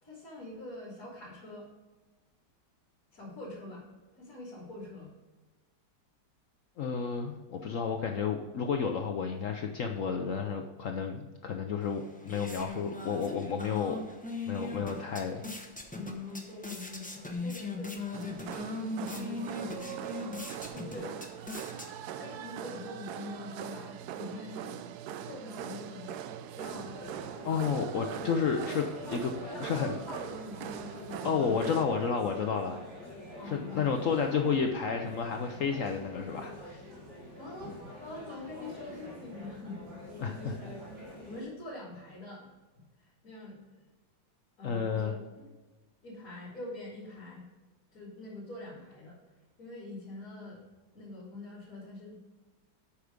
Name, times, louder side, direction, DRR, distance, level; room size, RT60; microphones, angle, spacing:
voice 1, 0.0-1.7 3.1-3.9 4.2-5.1 14.8-15.2 15.4-15.5 15.9-20.3 20.7-21.2 22.2-24.8 25.2-26.2 26.6-27.0 29.0-29.2 29.5-31.6 33.3-33.9 37.4-40.8 41.2-42.5 43.0-43.9 44.6-45.1 45.4-45.5 46.0-47.4 47.9-49.2 49.6-50.6 50.9-52.2, left 2 dB, 45° left, -7 dB, 2.8 m, -44 dB
voice 2, 6.8-14.0 14.5-15.4 27.4-29.3 29.6-29.9 31.2-32.8 33.4-36.8 40.2-40.5 44.6-45.1, left 6 dB, 75° left, 4 dB, 0.7 m, -31 dB
sound 1, 11.8-22.3, left 3 dB, 10° left, 0.3 m, -40 dB
sound 2, 18.1-31.9, right 9 dB, 75° right, 0.9 m, -42 dB
sound 3, 26.6-41.4, equal, 60° right, 2.8 m, -46 dB
8.3 x 5.9 x 5.1 m, 1.2 s
omnidirectional pair, 2.1 m